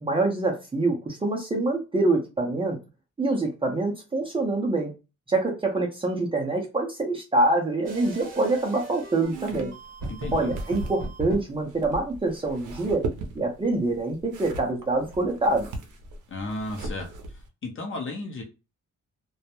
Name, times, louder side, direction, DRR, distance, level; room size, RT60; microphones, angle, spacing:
voice 1, 0.0-2.8 3.2-4.9 5.3-9.7 10.3-13.0 13.4-15.7, right 2 dB, 20° right, 0.5 m, -25 dB
sound 1, 7.8-11.4, right 2 dB, 45° right, 0.9 m, -36 dB
sound 2, 9.2-17.5, right 2 dB, 80° right, 0.6 m, -39 dB
voice 2, 10.1-10.5 16.3-17.1 17.6-18.4, left 2 dB, 45° left, 0.7 m, -33 dB
2.2 x 2.0 x 2.8 m
wide cardioid pair, 150°, 30 cm